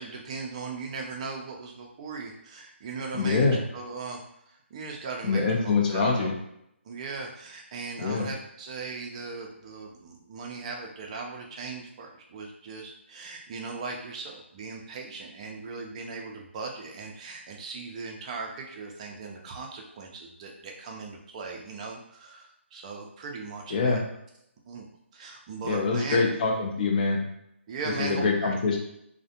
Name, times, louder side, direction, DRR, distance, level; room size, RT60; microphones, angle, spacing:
voice 1, 0.0-4.2 4.5-6.3 6.8-24.0 24.7-24.9 25.1-26.3 27.7-28.5, right 4 dB, 30° right, 1 dB, 0.4 m, -38 dB
voice 2, 3.1-3.6 5.2-6.3 8.0-8.3 23.7-24.0 25.6-27.2 28.0-28.8, left 4 dB, 40° left, 0 dB, 0.6 m, -24 dB
2.4 x 2.1 x 2.7 m, 0.77 s
figure-of-eight pair, 145°, 7 cm